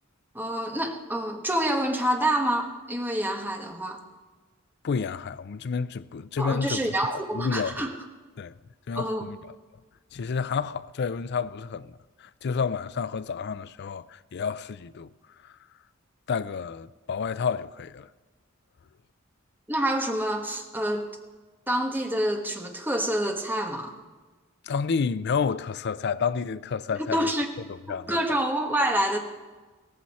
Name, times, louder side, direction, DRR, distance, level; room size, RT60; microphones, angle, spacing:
voice 1, 0.3-4.0 6.4-7.9 8.9-9.3 19.7-21.1 21.7-23.9 27.0-27.5 27.9-29.2, right 1 dB, 10° right, 1.2 m, -27 dB
voice 2, 4.8-7.9 8.4-8.5 8.9-9.5 10.1-15.1 15.4-15.5 16.3-18.1 24.6-27.3 27.7-28.4, left 5 dB, 55° left, 0.4 m, -30 dB
16.5 x 14.5 x 4.2 m
head